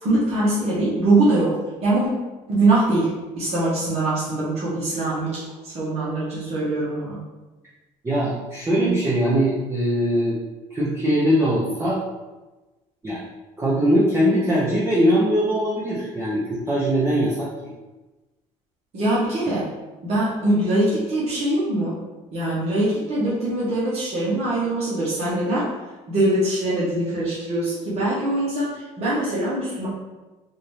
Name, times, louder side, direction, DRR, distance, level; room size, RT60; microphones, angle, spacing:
voice 1, 0.0-2.1 2.5-7.2 18.9-19.7 20.0-22.0 22.3-25.7 26.1-29.9, right 2 dB, 55° right, -8 dB, 1.4 m, -22 dB
voice 2, 8.0-10.4 10.7-12.0 13.0-13.2 13.6-17.7 19.5-19.6, equal, 20° right, -8 dB, 0.9 m, -21 dB
4.0 x 2.7 x 3.4 m, 1.1 s
cardioid pair, 105°, 13 cm